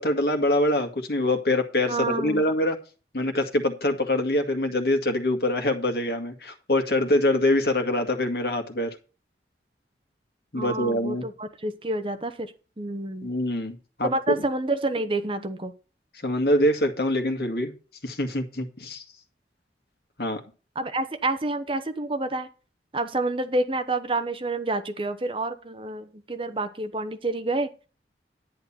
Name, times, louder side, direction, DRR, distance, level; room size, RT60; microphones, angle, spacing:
voice 1, 0.0-2.8 3.1-9.0 10.5-11.2 13.2-14.4 16.2-17.7 18.0-19.0 20.2-20.4, left 1 dB, 60° left, 5 dB, 2.0 m, -24 dB
voice 2, 1.9-2.5 10.5-13.3 14.0-15.7 20.7-22.5 22.9-27.7, right 2 dB, 30° right, 9 dB, 0.9 m, -28 dB
10.5 x 9.6 x 4.3 m, 0.35 s
head